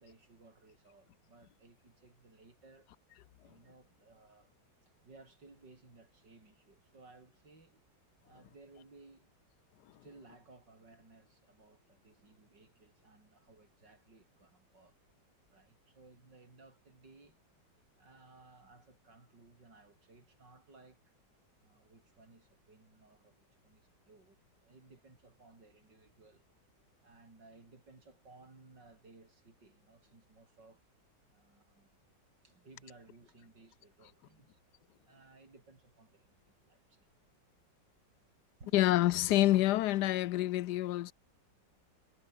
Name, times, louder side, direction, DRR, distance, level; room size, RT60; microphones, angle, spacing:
voice 1, 0.0-2.9 3.4-4.5 4.8-7.9 8.2-9.3 10.0-15.0 15.5-17.4 18.0-21.0 21.6-26.5 27.0-30.8 31.3-32.0 32.4-34.6 35.0-37.1 38.6-38.8, right 3 dB, 65° right, 5.7 m, -60 dB
voice 2, 38.7-41.1, left 15 dB, 70° left, 1.1 m, -27 dB
omnidirectional pair, 2.0 m